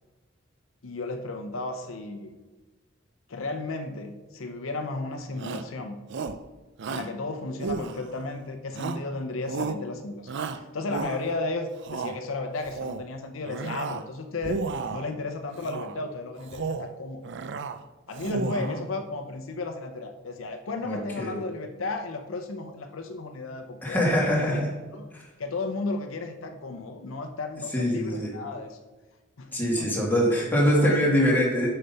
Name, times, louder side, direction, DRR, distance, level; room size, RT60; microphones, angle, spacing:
voice 1, 0.8-2.4 3.3-6.0 6.9-14.6 14.9-17.3 18.1-24.4 24.9-25.1 25.4-28.8 29.4-30.0 30.6-30.9, left 3 dB, 80° left, 6 dB, 0.7 m, -34 dB
Shout, 5.4-5.7 6.1-6.4 6.8-7.1 7.6-8.3 8.7-9.1 9.4-9.8 10.3-11.4 11.8-12.2 12.6-13.1 13.4-14.1 14.4-15.1 15.6-16.0 16.4-16.9 17.2-17.8 18.1-18.8, right 4 dB, 60° right, 0.4 m, -33 dB
voice 2, 18.3-18.7 20.8-21.3 23.8-24.7 27.7-28.3 29.5-31.7, equal, 10° left, -4 dB, 2.1 m, -23 dB
6.5 x 5.7 x 5.6 m, 1.2 s
head